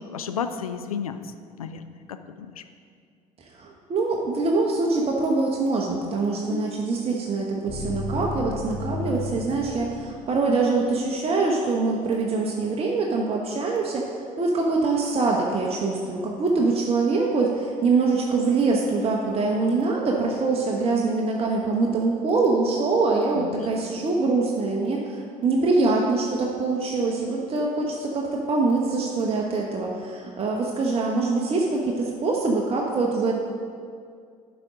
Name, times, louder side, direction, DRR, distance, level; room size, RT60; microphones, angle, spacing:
voice 1, 0.1-1.2 1.6-1.8 2.1-2.6 23.3-23.7, left 7 dB, 80° left, 9 dB, 0.4 m, -32 dB
voice 2, 3.4-33.3, right 3 dB, 35° right, -1 dB, 1.0 m, -24 dB
sound 1, 6.5-10.6, left 2 dB, ahead, 1.2 m, -34 dB
11.5 x 5.1 x 3.7 m, 2.2 s
figure-of-eight pair, 55°, 18 cm